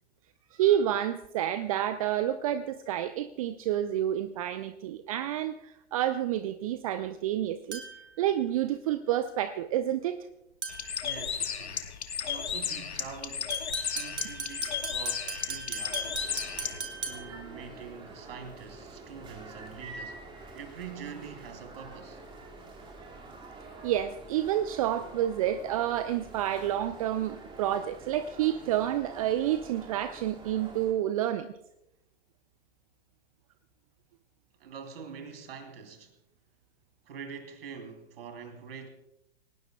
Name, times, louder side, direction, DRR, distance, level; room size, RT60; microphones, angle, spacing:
voice 1, 0.5-7.8 8.2-10.3 23.8-31.5, right 11 dB, 30° right, 0.6 m, -29 dB
sound 1, 7.7-8.2 10.6-11.0 13.5-17.5, right 4 dB, 70° right, 3.5 m, -38 dB
Bird, 10.7-16.8, left 7 dB, 65° left, 1.4 m, -34 dB
voice 2, 11.0-11.9 12.2-16.4 17.0-20.2 20.5-22.2 34.6-36.1 37.1-38.9, right 6 dB, 55° right, 3.1 m, -45 dB
sound 2, 15.9-30.9, right 3 dB, 15° right, 2.2 m, -47 dB
28.5 x 18.0 x 2.3 m
figure-of-eight pair, 110°, 35 cm